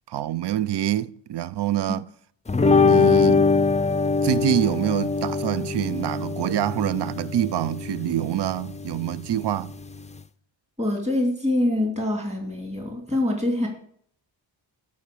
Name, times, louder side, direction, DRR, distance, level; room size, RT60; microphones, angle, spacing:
voice 1, 0.1-2.1 2.8-3.5 4.2-9.8, right 11 dB, 60° right, 0.5 m, -26 dB
sound 1, 2.5-10.2, left 4 dB, 15° left, 0.4 m, -23 dB
voice 2, 10.8-13.7, left 1 dB, 15° right, 2.7 m, -25 dB
10.5 x 5.1 x 6.9 m
cardioid pair, 70°, 47 cm